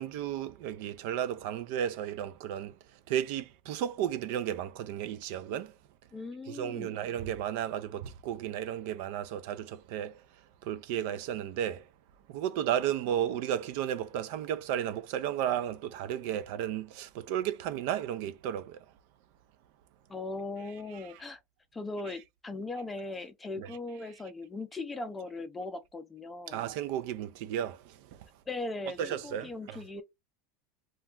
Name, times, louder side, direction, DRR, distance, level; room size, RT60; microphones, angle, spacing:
voice 1, 0.0-2.7 3.1-5.7 6.5-10.2 10.6-11.8 12.3-18.8 23.6-23.7 26.5-28.3 29.0-29.8, right 10 dB, 60° right, 0.3 m, -33 dB
voice 2, 6.1-7.0 20.1-21.4 21.7-26.6 28.5-30.0, left 3 dB, 10° left, 0.4 m, -39 dB
2.2 x 2.2 x 3.6 m
supercardioid pair, 160°, 0 cm